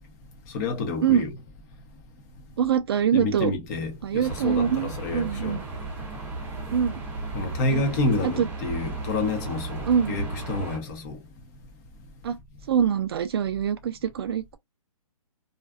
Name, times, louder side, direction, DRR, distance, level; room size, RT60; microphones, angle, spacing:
voice 1, 0.5-1.3 3.1-5.6 7.3-11.2, left 3 dB, 30° left, 0.8 m, -29 dB
voice 2, 2.6-3.5 4.0-5.6 6.7-7.0 7.7-7.8 8.2-8.5 9.9-10.1 12.2-12.4 12.7-14.6, right 8 dB, 45° right, 0.4 m, -24 dB
sound 1, 4.2-10.8, right 3 dB, 10° right, 0.7 m, -34 dB
2.5 x 2.4 x 2.3 m
hypercardioid pair, 145°, 19 cm